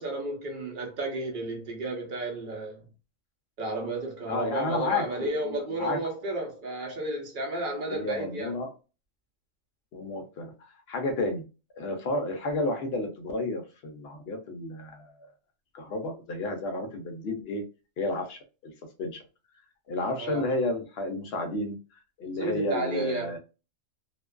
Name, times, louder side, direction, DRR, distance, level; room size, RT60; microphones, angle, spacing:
voice 1, 0.0-2.9 3.6-8.6 20.2-20.5 22.3-23.4, right 2 dB, 45° right, 0.8 m, -32 dB
voice 2, 4.3-6.0 7.9-8.7 9.9-11.4 11.8-15.3 15.7-17.6 18.0-18.7 19.0-19.2 19.9-21.8 22.2-23.4, left 2 dB, 60° left, 0.7 m, -31 dB
2.5 x 2.3 x 2.2 m
omnidirectional pair, 1.4 m